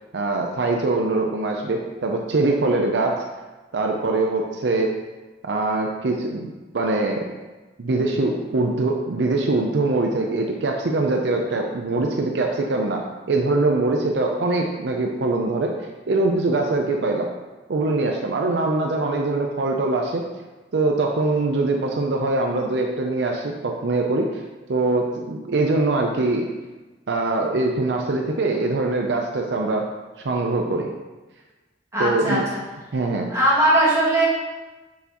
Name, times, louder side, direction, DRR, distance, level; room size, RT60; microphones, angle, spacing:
voice 1, 0.1-3.2 3.7-4.9 5.4-7.2 7.8-15.7 16.1-17.3 17.7-20.2 20.7-24.3 24.7-26.5 27.1-29.9 30.2-30.9 32.0-32.4 32.9-33.3, right 2 dB, 70° right, 2 dB, 0.5 m, -23 dB
voice 2, 31.9-32.6 33.3-34.2, right 1 dB, 15° right, -8 dB, 2.1 m, -19 dB
6.2 x 5.7 x 3.0 m, 1.2 s
head